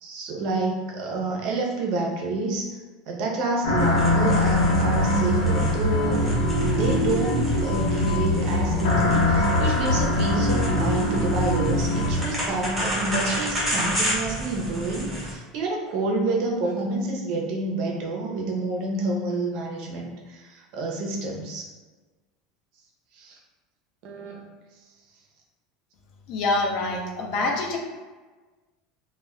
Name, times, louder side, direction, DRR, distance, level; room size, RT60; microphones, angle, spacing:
voice 1, 0.0-2.7 3.1-6.3 6.6-21.6 23.2-23.4 24.0-24.4, right 2 dB, 45° right, -1 dB, 0.5 m, -28 dB
sound 1, 3.6-12.2, left 1 dB, 85° left, 0.7 m, -22 dB
sound 2, 3.8-15.3, equal, 5° right, 0.6 m, -32 dB
voice 2, 26.3-27.8, left 2 dB, 40° left, 1 dB, 0.4 m, -25 dB
2.2 x 2.1 x 3.5 m, 1.3 s
supercardioid pair, 175°, 0 cm